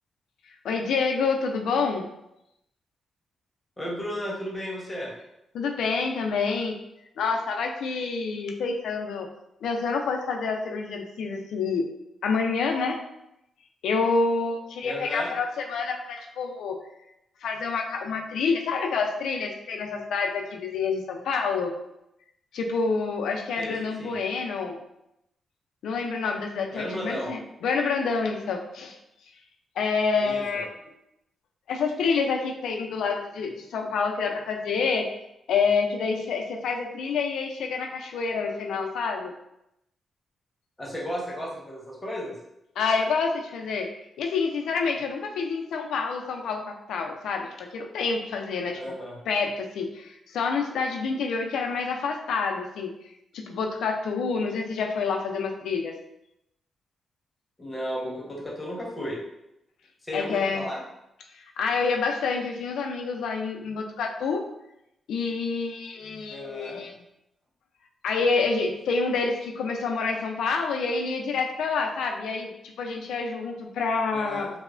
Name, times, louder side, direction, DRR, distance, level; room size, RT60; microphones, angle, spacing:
voice 1, 0.6-2.1 5.5-6.8 7.2-9.3 9.6-11.9 12.2-13.0 13.8-16.8 17.4-21.7 22.5-24.8 25.8-29.0 29.8-30.7 31.7-35.1 35.5-39.3 42.8-43.9 44.2-48.8 49.3-52.9 53.3-55.9 60.1-60.7 61.3-64.4 65.1-67.0 68.0-74.5, left 4 dB, 85° left, 2 dB, 0.3 m, -27 dB
voice 2, 3.8-5.1 14.8-15.3 23.6-24.2 26.7-27.3 30.2-30.6 40.8-42.3 48.7-49.2 57.6-59.2 60.0-60.8 66.3-66.8 74.1-74.5, equal, 20° left, -4 dB, 0.9 m, -34 dB
3.0 x 2.0 x 2.4 m, 0.85 s
cardioid pair, 90°, 0 cm